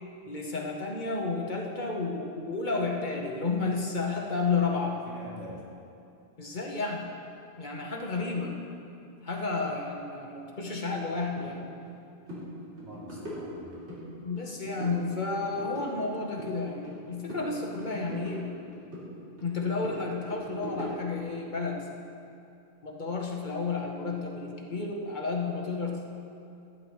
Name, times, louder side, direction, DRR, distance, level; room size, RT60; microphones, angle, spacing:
voice 1, 0.2-5.0 6.4-7.1 7.6-8.5 9.2-11.6 14.2-18.5 19.4-21.9 22.8-26.1, left 4 dB, 45° left, 0 dB, 1.2 m, -31 dB
voice 2, 4.3-5.7 12.8-13.7, equal, 70° right, -6 dB, 2.7 m, -46 dB
sound 1, 11.4-11.5 11.8-12.0 12.3-12.4 12.8-14.0 14.4-15.0 15.3-17.0 17.3-19.1 19.4-21.2, equal, 90° right, 3.4 m, -40 dB
15.0 x 10.0 x 3.1 m, 2.6 s
omnidirectional pair, 1.1 m